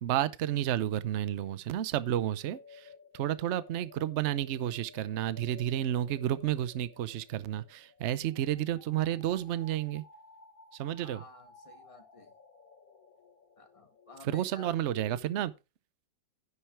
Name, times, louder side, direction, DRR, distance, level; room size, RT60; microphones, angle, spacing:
voice 1, 0.0-2.9 3.1-10.0 10.7-11.2 14.2-15.5, right 11 dB, 80° right, 0.6 m, -31 dB
sound 1, 2.1-15.4, left 4 dB, 50° left, 1.6 m, -56 dB
voice 2, 11.0-12.3 13.6-14.7, left 2 dB, 20° left, 1.7 m, -52 dB
10.0 x 6.8 x 4.5 m
omnidirectional pair, 2.0 m